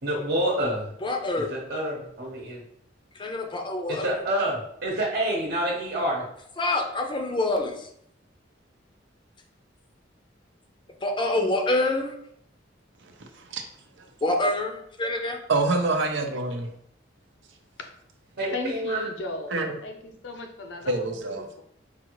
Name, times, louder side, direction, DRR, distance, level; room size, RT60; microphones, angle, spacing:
voice 1, 0.0-0.9 1.5-2.6 3.9-6.2 18.4-19.1, right 1 dB, 55° right, -4 dB, 0.9 m, -27 dB
voice 2, 1.0-1.5 3.1-4.1 6.6-7.9 11.0-12.1 14.2-15.4, left 2 dB, 25° left, 3 dB, 0.5 m, -26 dB
voice 3, 15.5-16.7 19.5-19.7 20.9-21.5, right 3 dB, 80° right, 4 dB, 0.6 m, -25 dB
voice 4, 18.5-21.6, left 2 dB, 70° left, 5 dB, 0.6 m, -37 dB
4.8 x 2.4 x 3.0 m, 0.71 s
head